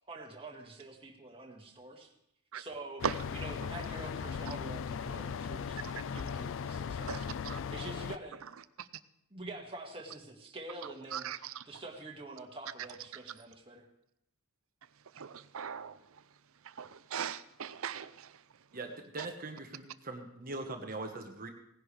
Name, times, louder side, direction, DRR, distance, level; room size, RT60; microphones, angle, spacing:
voice 1, 0.1-2.1 2.5-3.0 3.3-5.8 6.1-7.3 7.7-8.4 9.3-11.3 11.7-13.9, right 2 dB, 25° right, 0 dB, 1.8 m, -46 dB
sound 1, 3.0-8.2, left 6 dB, 60° left, 0.4 m, -38 dB
voice 2, 7.1-7.6 11.1-11.5 15.2-16.0 16.8-18.3, right 7 dB, 65° right, 14 dB, 0.6 m, -38 dB
voice 3, 18.7-21.5, right 2 dB, 40° right, 4 dB, 1.3 m, -41 dB
18.0 x 10.5 x 3.3 m, 0.76 s
head